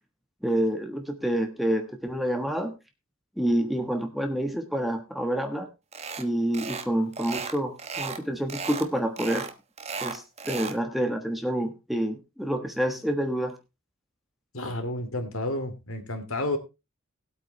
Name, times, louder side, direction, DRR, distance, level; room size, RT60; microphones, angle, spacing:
voice 1, 0.4-2.7 3.4-5.7 6.2-9.5 10.0-13.5, right 1 dB, ahead, 5 dB, 1.3 m, -28 dB
sound 1, 5.9-6.3 6.5-6.9 7.1-8.2 8.5-8.9 9.2-10.8, right 5 dB, 30° right, 1.2 m, -35 dB
voice 2, 14.5-16.6, left 1 dB, 75° left, 7 dB, 2.5 m, -31 dB
19.0 x 8.4 x 3.3 m, 0.26 s
head